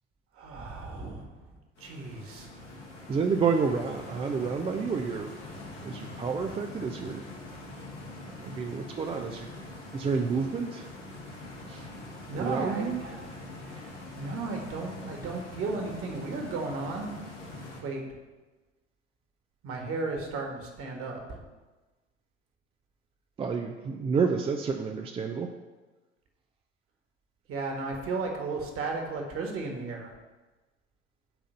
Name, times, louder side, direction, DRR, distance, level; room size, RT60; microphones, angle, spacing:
voice 1, 0.4-1.3 1.8-2.5 12.3-17.1 17.8-18.1 19.6-21.4 27.5-30.1, right 3 dB, 40° right, 2 dB, 1.7 m, -35 dB
Stream, 1.8-17.8, left 2 dB, 80° left, 2.0 m, -43 dB
voice 2, 3.1-5.3 5.8-7.2 8.4-9.5 9.9-10.9 11.7-11.9 12.3-13.0 23.4-25.5, right 5 dB, 15° right, 4 dB, 0.4 m, -29 dB
8.9 x 3.8 x 6.7 m, 1.2 s
figure-of-eight pair, 70°, 36 cm